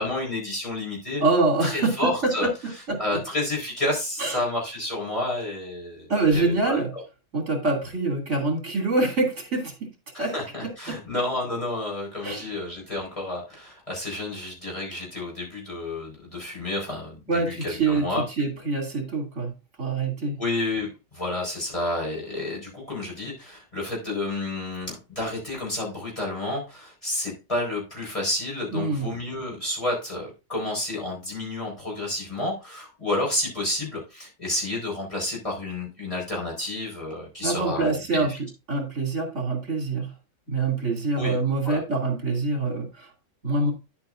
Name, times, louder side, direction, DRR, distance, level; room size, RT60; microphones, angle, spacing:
voice 1, 0.0-1.2 1.6-2.5 3.0-6.8 10.1-18.2 20.4-38.4 41.1-41.4 41.6-41.8, left 2 dB, 25° left, -3 dB, 4.7 m, -30 dB
voice 2, 1.2-3.2 4.2-4.4 6.1-6.9 7.3-9.7 10.2-10.3 10.6-11.0 12.2-12.5 17.3-18.1 18.4-19.5 19.8-20.4 28.7-29.1 37.4-38.3 38.7-40.1 40.5-43.1 43.4-43.7, right 3 dB, 65° right, 2 dB, 2.9 m, -25 dB
10.0 x 8.2 x 2.5 m, 0.28 s
omnidirectional pair, 1.4 m